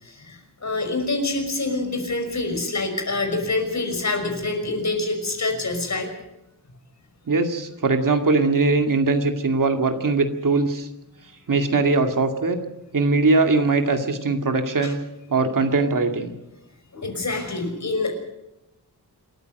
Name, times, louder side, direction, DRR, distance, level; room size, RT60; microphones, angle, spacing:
voice 1, 0.0-6.1 14.8-14.9 16.9-18.2, left 2 dB, 45° left, 5 dB, 5.7 m, -26 dB
voice 2, 7.3-10.9 11.5-12.6 12.9-15.0 15.3-16.3, right 3 dB, 50° right, 5 dB, 2.3 m, -21 dB
27.5 x 14.5 x 7.8 m, 0.91 s
wide cardioid pair, 160°, 40 cm